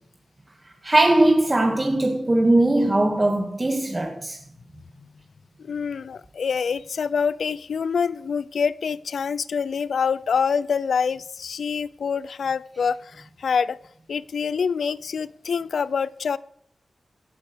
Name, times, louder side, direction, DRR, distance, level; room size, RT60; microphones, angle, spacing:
voice 1, 0.8-4.4, right 1 dB, 30° right, 2.2 m, -20 dB
voice 2, 5.6-13.8 14.1-16.4, left 6 dB, 85° left, 0.5 m, -26 dB
17.5 x 8.4 x 6.3 m
cardioid pair, 65°, 0 cm